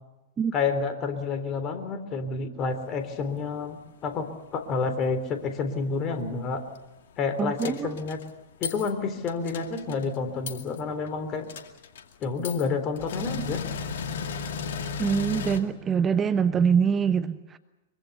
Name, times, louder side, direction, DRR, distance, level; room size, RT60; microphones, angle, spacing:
voice 1, 0.5-4.3 4.5-6.6 7.2-8.2 8.6-11.5 12.2-13.6, left 4 dB, 35° left, 8 dB, 3.6 m, -29 dB
voice 2, 7.4-8.0 15.0-17.6, right 6 dB, 20° right, 11 dB, 1.0 m, -24 dB
sound 1, 7.6-8.2 8.6-8.9 9.3-10.1 10.5-10.8 11.1-11.2 11.5-12.7 13.0-15.6, left 6 dB, 65° left, 2.3 m, -34 dB
24.5 x 24.0 x 6.8 m, 1.0 s
figure-of-eight pair, 100°, 0 cm